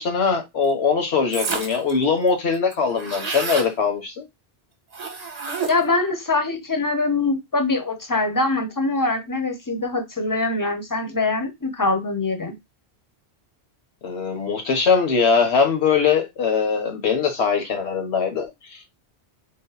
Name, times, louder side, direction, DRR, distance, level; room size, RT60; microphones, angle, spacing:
voice 1, 0.0-4.3 14.0-18.9, left 5 dB, 85° left, 1.3 m, -21 dB
sound 1, 1.3-1.9 2.3-2.4 2.5-3.7 4.9-6.0, right 4 dB, 40° right, 0.9 m, -29 dB
voice 2, 5.7-12.5, left 3 dB, 25° left, 0.6 m, -23 dB
3.8 x 2.0 x 4.0 m
omnidirectional pair, 1.1 m